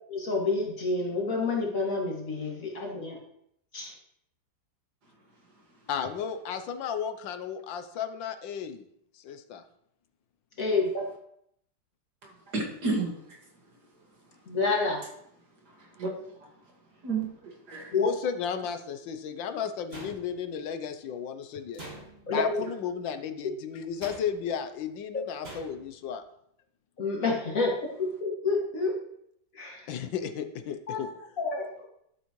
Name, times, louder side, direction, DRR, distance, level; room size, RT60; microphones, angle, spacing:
voice 1, 0.1-3.2 3.7-3.9 10.6-11.0 14.5-15.0 17.9-18.1 22.3-22.4 27.0-27.7 28.0-28.9 29.6-29.8 30.9-31.0 31.4-31.7, left 3 dB, 45° left, -2 dB, 2.5 m, -28 dB
voice 2, 5.9-8.8 9.2-9.6 17.9-21.8 22.3-26.2 29.9-31.1, left 7 dB, 85° left, 9 dB, 1.5 m, -34 dB
voice 3, 12.2-13.4 15.8-16.5 17.0-17.9, right 3 dB, 60° right, 0 dB, 2.5 m, -33 dB
sound 1, 19.9-20.6 21.7-22.4 24.0-24.6 25.4-26.0, right 1 dB, 30° right, 2.8 m, -45 dB
12.0 x 7.9 x 3.1 m, 0.73 s
omnidirectional pair, 2.0 m